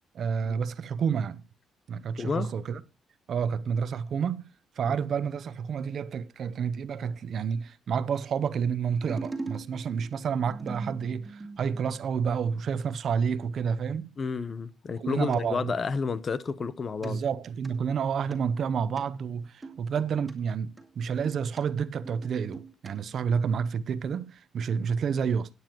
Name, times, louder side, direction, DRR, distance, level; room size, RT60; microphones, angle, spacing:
voice 1, 0.1-1.4 1.9-2.8 3.3-4.5 4.8-14.1 15.0-15.7 17.0-25.5, right 6 dB, 60° right, 0.7 m, -29 dB
voice 2, 2.2-2.5 14.2-17.2, left 5 dB, 40° left, 0.8 m, -31 dB
sound 1, 8.9-12.0 15.1-15.4 17.0-17.1 17.5-17.7 18.3-18.4 19.0-19.1 19.6-20.3 20.8-21.6 22.0-22.9 23.2-23.3, right 3 dB, 20° right, 2.8 m, -41 dB
16.5 x 9.5 x 3.0 m
cardioid pair, 90°, 0 cm